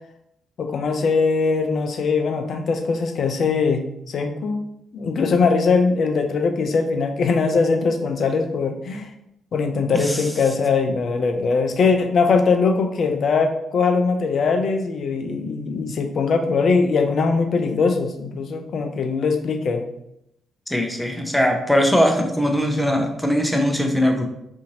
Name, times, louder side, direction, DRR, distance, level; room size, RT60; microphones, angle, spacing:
voice 1, 0.6-4.6 4.9-9.1 9.5-19.8, left 4 dB, 55° left, 6 dB, 0.3 m, -21 dB
voice 2, 9.9-10.3 20.7-24.3, equal, 5° left, 3 dB, 0.6 m, -20 dB
2.7 x 2.5 x 2.7 m, 0.80 s
figure-of-eight pair, 40°, 0 cm